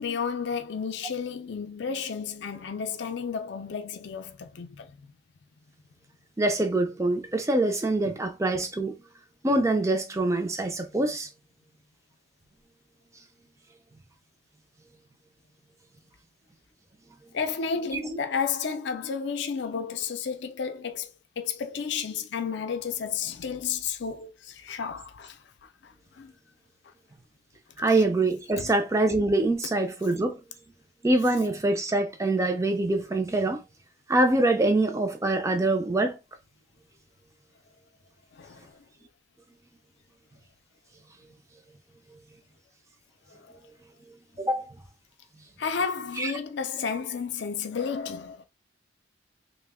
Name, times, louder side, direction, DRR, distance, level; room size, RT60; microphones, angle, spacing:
voice 1, 0.0-5.1 8.0-8.2 17.3-21.1 21.4-25.4 25.8-26.3 28.6-28.7 38.3-38.8 43.3-43.4 45.6-48.4, left 6 dB, 60° left, 0.4 m, -32 dB
voice 2, 6.4-8.9 9.4-11.3 17.9-18.0 27.8-30.4 31.0-33.6 34.1-36.2 44.4-44.7 46.2-46.3, right 2 dB, 15° right, 0.4 m, -24 dB
2.9 x 2.1 x 3.5 m
head